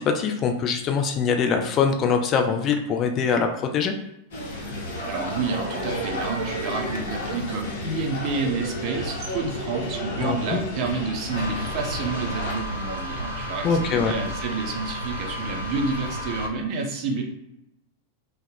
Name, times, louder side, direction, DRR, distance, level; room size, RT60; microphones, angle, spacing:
voice 1, 0.0-3.9 10.2-10.6 13.6-14.1, left 6 dB, 30° left, 5 dB, 0.3 m, -23 dB
sound 1, 4.3-12.5, equal, 55° left, 0.7 m, -32 dB
voice 2, 5.1-17.2, right 4 dB, 40° right, 1 dB, 0.6 m, -29 dB
sound 2, 11.3-16.5, equal, 75° right, 0.8 m, -32 dB
2.2 x 2.1 x 3.2 m, 0.84 s
figure-of-eight pair, 90°, 0 cm